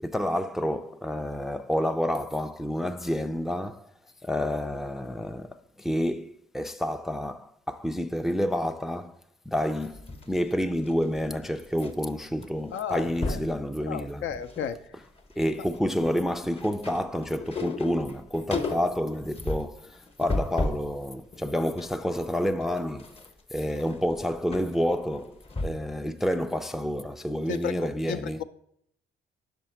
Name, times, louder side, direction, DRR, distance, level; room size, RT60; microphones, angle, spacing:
voice 1, 0.0-3.9 4.2-9.2 9.5-14.3 15.4-23.1 23.5-28.4, equal, ahead, 0.3 m, -29 dB
sound 1, 9.8-11.9 12.2-12.4 12.7-13.5 14.1-14.7 15.0-20.9 21.3-26.0 26.3-26.4, left 2 dB, 30° left, 0.8 m, -35 dB
voice 2, 12.7-13.4 13.9-14.8 27.5-28.4, left 8 dB, 75° left, 0.5 m, -33 dB
5.3 x 4.9 x 5.6 m
cardioid pair, 90°, 20 cm